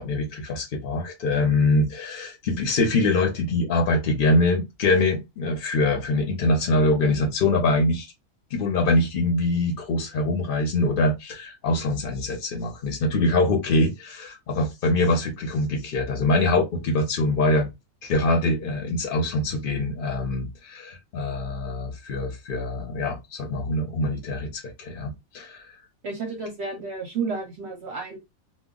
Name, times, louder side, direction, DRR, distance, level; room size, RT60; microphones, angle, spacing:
voice 1, 0.0-8.1 8.5-17.7 18.0-25.6, left 2 dB, 50° left, 0.7 m, -24 dB
voice 2, 26.0-28.2, right 4 dB, 60° right, 0.7 m, -31 dB
2.2 x 2.2 x 3.6 m
omnidirectional pair, 1.5 m